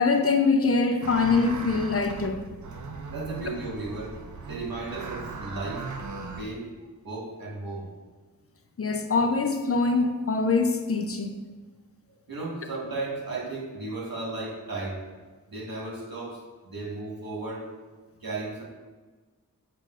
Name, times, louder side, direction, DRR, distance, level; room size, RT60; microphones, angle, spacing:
voice 1, 0.0-2.4 8.8-11.4, left 4 dB, 40° left, 5 dB, 0.5 m, -24 dB
sound 1, 1.0-6.4, right 4 dB, 55° right, 0.6 m, -38 dB
voice 2, 3.1-4.2 4.5-5.8 6.4-6.7 7.0-7.9 12.3-15.0 15.5-17.7 18.2-18.6, right 2 dB, 70° right, -5 dB, 1.6 m, -35 dB
6.5 x 5.8 x 2.5 m, 1.3 s
wide cardioid pair, 80°, 36 cm